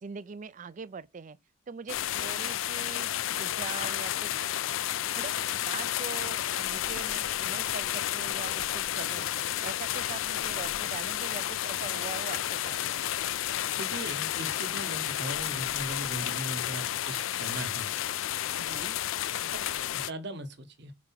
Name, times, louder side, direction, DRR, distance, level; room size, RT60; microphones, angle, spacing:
voice 1, 0.0-1.4 1.7-4.6 5.1-9.3 9.6-13.0 18.6-19.0, right 5 dB, 40° right, 0.4 m, -42 dB
sound 1, 1.9-20.1, left 12 dB, 75° left, 0.4 m, -31 dB
voice 2, 13.7-17.9 18.7-18.8 19.4-19.6 19.9-20.9, right 1 dB, 55° right, 1.1 m, -39 dB
5.0 x 4.7 x 5.7 m
head